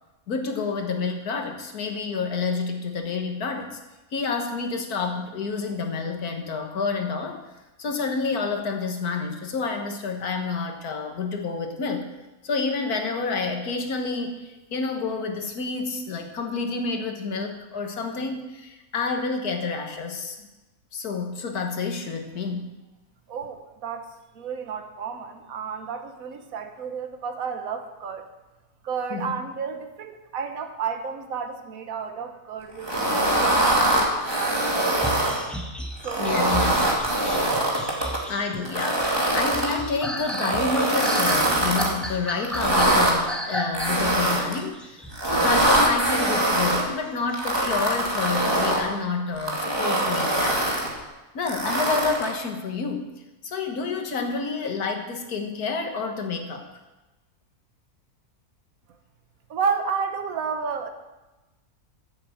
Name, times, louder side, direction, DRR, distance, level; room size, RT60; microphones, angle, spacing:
voice 1, 0.3-3.8 4.1-7.4 7.8-12.1 12.4-20.5 20.9-22.7 29.1-29.4 36.2-36.7 38.3-45.0 45.3-50.7 51.3-53.1 53.4-56.7, left 4 dB, 85° left, 4 dB, 1.9 m, -29 dB
voice 2, 23.3-24.1 24.3-28.3 28.8-35.4 36.0-36.6 59.5-60.9, right 6 dB, 70° right, 6 dB, 1.5 m, -32 dB
sound 1, 32.8-35.4 36.0-38.2 38.6-39.7 40.3-41.9 42.4-43.1 43.7-44.6 45.1-46.8 47.3-48.8 49.4-50.9 51.5-52.3, right 1 dB, 15° right, 2.2 m, -23 dB
sound 2, 34.9-46.3 47.0-47.4, equal, ahead, 1.3 m, -34 dB
10.5 x 8.1 x 7.7 m, 1.1 s
omnidirectional pair, 1.6 m